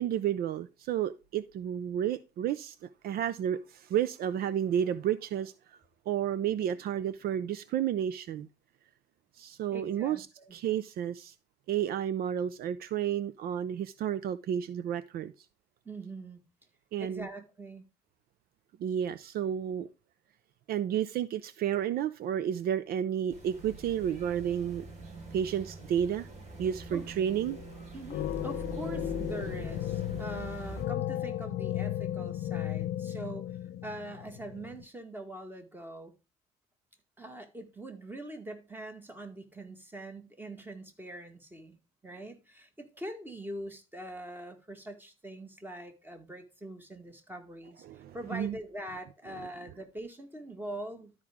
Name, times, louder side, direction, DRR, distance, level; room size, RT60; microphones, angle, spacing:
voice 1, 0.0-2.8 3.0-5.8 6.1-8.5 9.4-11.3 11.7-15.3 16.9-17.3 18.8-19.9 20.7-24.8 25.3-26.3 26.6-27.6 47.8-48.6 49.3-49.5, right 9 dB, 65° right, 0.6 m, -31 dB
voice 2, 9.7-10.6 15.9-16.4 17.0-17.9 26.9-27.0 27.9-36.1 37.2-41.8 42.0-47.8 48.1-51.1, right 1 dB, 10° right, 1.9 m, -43 dB
sound 1, 23.3-30.9, right 3 dB, 45° right, 4.2 m, -44 dB
sound 2, 27.5-27.8 28.1-34.8, left 12 dB, 75° left, 0.6 m, -35 dB
12.5 x 4.8 x 3.5 m
cardioid pair, 110°, 17 cm